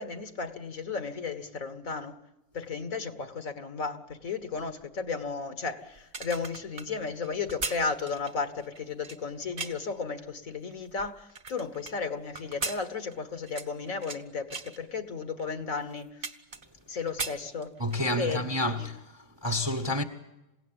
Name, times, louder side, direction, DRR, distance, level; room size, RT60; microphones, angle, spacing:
voice 1, 0.0-2.2 2.5-16.2 16.9-17.7 18.2-18.9, left 4 dB, 55° left, 1.8 m, -34 dB
sound 1, 6.0-10.0 10.5-11.9 12.3-14.2 14.5-14.8 15.4-15.5 15.8-16.8 17.1-18.1 18.4-18.6, right 4 dB, 35° right, 1.5 m, -38 dB
voice 2, 17.8-20.0, left 1 dB, 15° right, 1.1 m, -29 dB
28.0 x 17.0 x 9.0 m
omnidirectional pair, 1.8 m